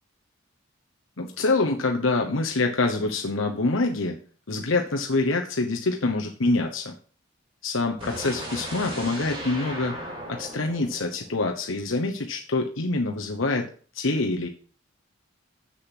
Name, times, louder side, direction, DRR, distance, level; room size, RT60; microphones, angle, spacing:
voice 1, 1.2-4.2 4.5-6.9 7.6-10.0 10.3-14.5, left 3 dB, 75° left, 3 dB, 1.0 m, -26 dB
sound 1, 8.0-12.0, right 1 dB, 25° right, 3.9 m, -37 dB
7.9 x 6.8 x 6.0 m, 0.42 s
head